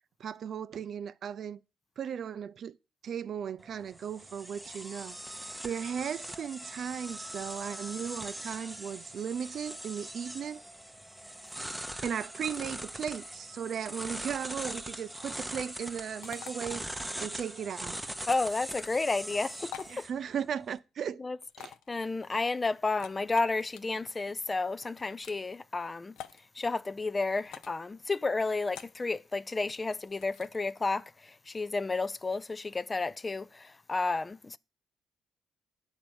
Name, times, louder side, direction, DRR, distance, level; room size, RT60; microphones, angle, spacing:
voice 1, 0.2-1.6 2.0-2.8 3.0-5.2 5.6-10.6 11.8-16.8 17.2-18.1 19.9-21.2 21.6-21.7, right 8 dB, 60° right, 0.4 m, -36 dB
sound 1, 3.6-20.8, right 1 dB, 5° right, 0.7 m, -41 dB
sound 2, 16.2-16.5 18.7-19.0 19.6-20.0 21.5-21.9 22.9-23.8 24.8-25.4 26.2-26.4 27.4-27.8 28.7-29.0 29.9-30.6, left 10 dB, 90° left, 0.6 m, -47 dB
voice 2, 18.3-20.1 21.2-21.4 21.6-26.1 26.6-34.6, left 3 dB, 25° left, 0.3 m, -32 dB
8.9 x 4.3 x 7.0 m
cardioid pair, 100°, 0 cm